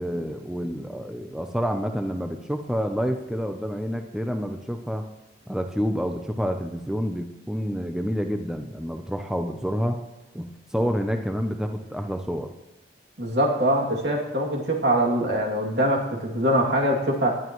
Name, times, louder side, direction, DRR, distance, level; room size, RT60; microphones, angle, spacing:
voice 1, 0.0-5.0 5.5-10.0 10.3-12.5, equal, 5° right, 5 dB, 0.7 m, -28 dB
voice 2, 13.2-17.4, right 1 dB, 75° right, -1 dB, 2.6 m, -23 dB
19.0 x 11.0 x 3.1 m, 1.0 s
head